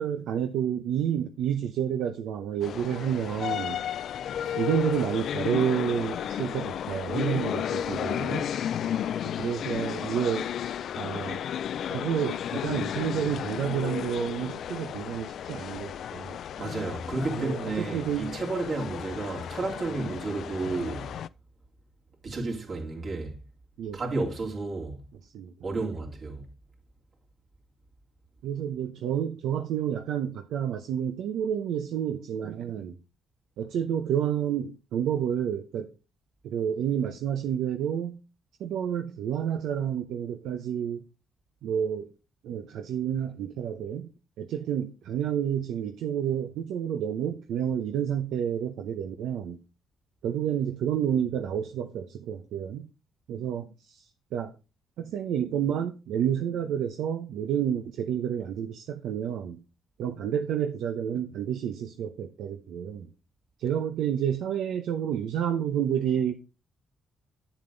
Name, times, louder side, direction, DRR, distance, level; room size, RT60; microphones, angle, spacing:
voice 1, 0.0-3.8 4.5-8.5 9.4-10.5 11.0-11.4 11.9-16.4 17.4-18.3 23.8-24.0 25.3-25.5 28.4-33.0 33.6-35.9 36.4-38.2 38.6-41.0 41.6-42.1 42.4-44.1 44.4-49.6 50.2-52.9 53.3-54.0 54.3-54.5 55.0-59.6 60.0-63.1 63.6-66.3, right 9 dB, 80° right, 0.8 m, -29 dB
sound 1, 2.6-21.3, left 9 dB, 65° left, 0.3 m, -33 dB
voice 2, 16.6-21.1 22.2-23.4 23.9-25.1 25.6-26.5, right 3 dB, 50° right, 3.0 m, -32 dB
9.1 x 7.3 x 3.9 m
cardioid pair, 90°, 0 cm